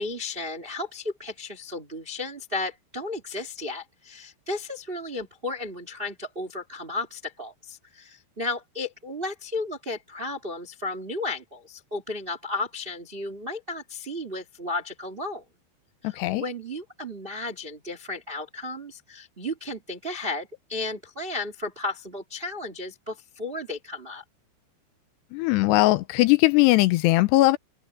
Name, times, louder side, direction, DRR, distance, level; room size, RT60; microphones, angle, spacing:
voice 1, 0.0-15.4 16.0-24.2, left 2 dB, 70° right, 0.5 m, -34 dB
voice 2, 25.3-27.6, left 19 dB, 80° left, 2.8 m, -19 dB
omnidirectional pair, 5.1 m